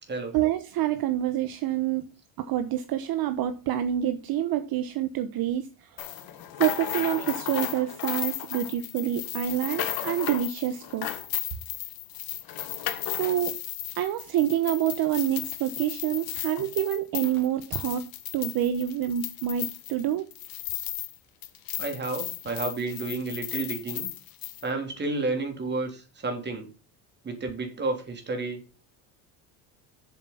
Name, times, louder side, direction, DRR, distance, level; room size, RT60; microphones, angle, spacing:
voice 1, 0.3-2.1 2.4-5.7 6.6-11.1 13.1-13.6 14.0-18.0 18.3-20.3, right 12 dB, 55° right, 1.1 m, -27 dB
sound 1, 6.0-21.2 21.4-24.6, left 13 dB, 55° left, 1.7 m, -35 dB
voice 2, 21.8-24.1 24.6-26.7 27.2-28.6, right 3 dB, 25° right, 3.1 m, -31 dB
7.7 x 7.2 x 5.8 m
cardioid pair, 135°, 43 cm